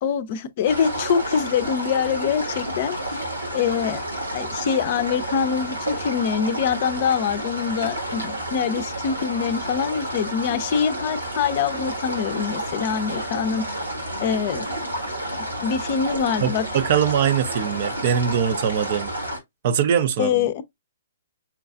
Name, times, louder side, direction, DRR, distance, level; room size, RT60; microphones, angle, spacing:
voice 1, 0.0-3.0 3.5-4.0 4.3-13.6 14.2-14.7 15.6-16.7 20.2-20.6, left 7 dB, 45° left, 0.5 m, -24 dB
sound 1, 0.7-19.4, right 1 dB, 90° right, 1.6 m, -30 dB
voice 2, 16.4-19.1 19.6-20.5, right 8 dB, 45° right, 0.5 m, -22 dB
5.7 x 2.3 x 2.4 m
figure-of-eight pair, 120°, 0 cm